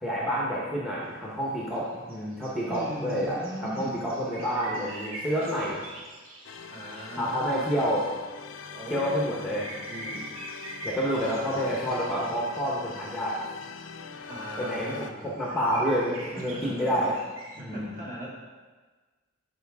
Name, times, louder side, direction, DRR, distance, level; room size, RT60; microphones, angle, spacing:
voice 1, 0.0-5.8 7.2-8.1 8.9-9.6 9.9-10.3 10.8-13.4 14.6-17.1 17.5-18.0, equal, ahead, -5 dB, 1.1 m, -29 dB
sound 1, 1.2-1.3 1.5-7.2 7.5-14.1 14.4-17.6, right 1 dB, 80° right, 1.4 m, -44 dB
voice 2, 2.7-4.1 6.7-7.9 8.7-9.8 11.2-11.8 14.3-15.4 16.3-17.0 17.6-18.3, right 1 dB, 40° right, -6 dB, 2.6 m, -39 dB
sound 2, 6.4-15.1, left 6 dB, 70° left, 0.5 m, -42 dB
12.0 x 5.0 x 3.6 m, 1.3 s
head